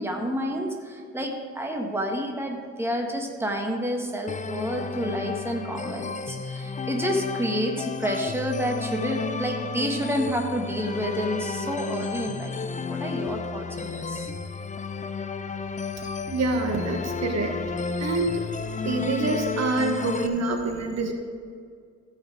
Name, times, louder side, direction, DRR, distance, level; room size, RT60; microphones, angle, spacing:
voice 1, 0.0-14.3, equal, 10° right, 1 dB, 1.5 m, -29 dB
sound 1, 4.3-20.3, left 5 dB, 25° left, 0.6 m, -32 dB
voice 2, 16.3-17.5 18.0-18.4 18.8-21.1, right 3 dB, 60° right, 3 dB, 1.4 m, -26 dB
15.5 x 5.8 x 4.7 m, 2.1 s
cardioid pair, 90°, 30 cm